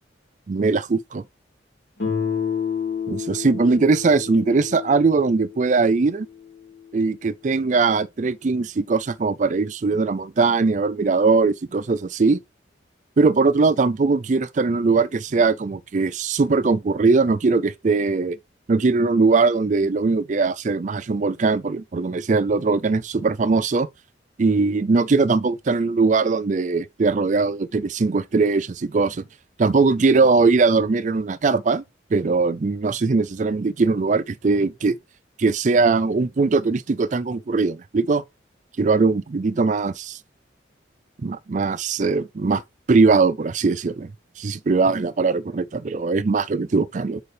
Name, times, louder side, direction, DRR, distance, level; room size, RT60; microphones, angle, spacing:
voice 1, 0.5-1.2 3.1-6.3 6.9-12.4 13.2-18.4 18.7-23.9 24.4-29.2 29.6-31.8 32.1-35.0 35.4-38.2 38.8-40.2 41.2-42.6 42.9-44.1 44.4-47.2, right 4 dB, 40° right, 0.4 m, -20 dB
Guitar, 2.0-6.8, left 7 dB, 70° left, 2.9 m, -30 dB
6.9 x 4.7 x 3.3 m
head